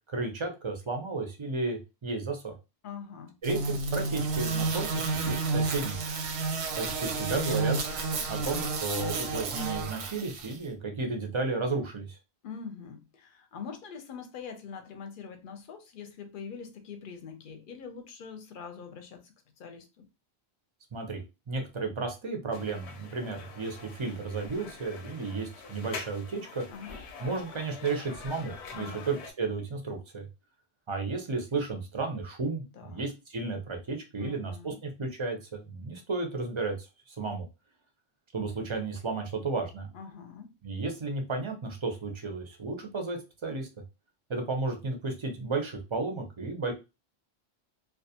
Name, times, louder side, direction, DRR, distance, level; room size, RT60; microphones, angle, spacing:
voice 1, 0.1-2.5 3.4-6.0 6.8-7.8 8.3-12.2 20.9-21.2 21.5-26.6 27.2-30.3 30.9-37.5 38.3-39.9 40.6-43.7 44.3-46.7, right 3 dB, 40° right, 0.5 m, -33 dB
voice 2, 2.8-3.3 12.4-20.1 26.7-27.0 28.7-29.1 32.7-33.1 34.1-34.8 39.9-40.5, left 6 dB, 60° left, 0.7 m, -43 dB
sound 1, 3.4-10.6, right 3 dB, 90° right, 0.9 m, -31 dB
sound 2, 22.5-29.3, left 5 dB, 85° left, 0.9 m, -45 dB
2.3 x 2.3 x 2.7 m
omnidirectional pair, 1.1 m